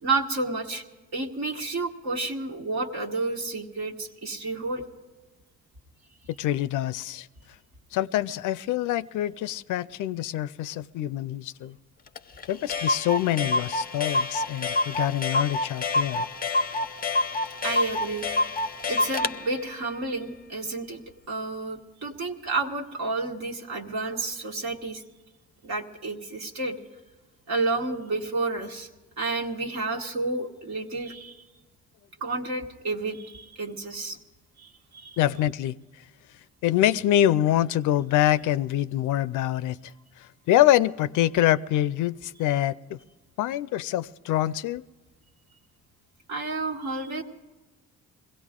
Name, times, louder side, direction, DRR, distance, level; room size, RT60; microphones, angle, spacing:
voice 1, 0.0-0.8 1.1-4.8 17.6-18.2 18.9-21.0 21.3-25.0 25.6-26.8 27.5-28.9 29.2-31.4 32.2-34.2 34.6-35.2 46.3-47.2, right 3 dB, 65° right, 1.6 m, -30 dB
voice 2, 6.4-7.3 7.9-11.8 12.5-16.3 35.2-35.7 36.6-39.8 40.5-43.0 43.4-44.8, left 13 dB, 80° left, 0.5 m, -25 dB
Clock, 12.2-12.3 12.4-12.5 12.7-19.4, left 2 dB, 30° left, 0.6 m, -27 dB
22.0 x 16.5 x 3.7 m
cardioid pair, 90°, 30 cm